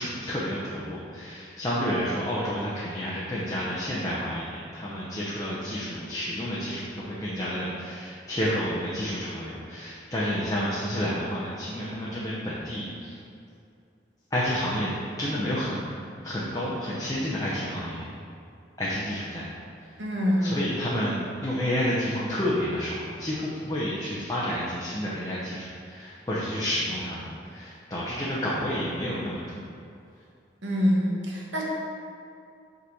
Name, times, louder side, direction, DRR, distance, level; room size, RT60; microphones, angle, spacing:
voice 1, 0.0-13.2 14.3-14.9 15.2-15.8 16.2-18.0 18.8-19.5 19.8-19.9 20.4-29.6, equal, 20° left, -7 dB, 0.8 m, -30 dB
voice 2, 20.0-20.7 30.6-31.6, equal, 90° right, -3 dB, 1.4 m, -25 dB
5.7 x 4.0 x 6.1 m, 2.5 s
head